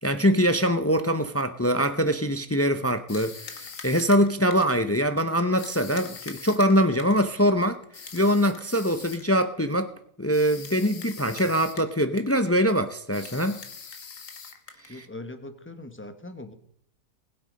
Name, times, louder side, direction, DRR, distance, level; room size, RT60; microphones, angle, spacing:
voice 1, 0.0-7.8 8.1-9.9 10.2-13.6 14.9-15.0, equal, 25° left, 0.3 m, -23 dB
sound 1, 3.1-4.8 5.6-7.3 7.9-9.3 10.3-11.9 12.2-12.5 13.1-15.0, left 6 dB, 60° left, 1.6 m, -42 dB
voice 2, 14.9-16.5, left 2 dB, 10° left, 1.1 m, -40 dB
20.0 x 8.0 x 5.3 m
omnidirectional pair, 1.6 m